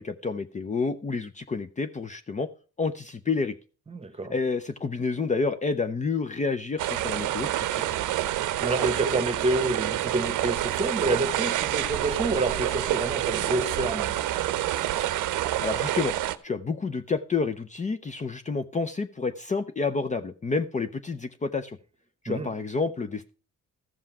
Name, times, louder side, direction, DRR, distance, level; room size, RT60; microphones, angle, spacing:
voice 1, 0.0-2.5 2.8-3.5 4.3-7.9 15.6-21.8 22.2-23.3, left 4 dB, 25° left, 0.6 m, -29 dB
voice 2, 3.9-4.3 8.6-14.2 22.3-22.5, right 2 dB, 20° right, 1.1 m, -28 dB
sound 1, 6.8-16.4, right 13 dB, 80° right, 0.7 m, -28 dB
14.0 x 5.5 x 5.9 m
cardioid pair, 90°, 30 cm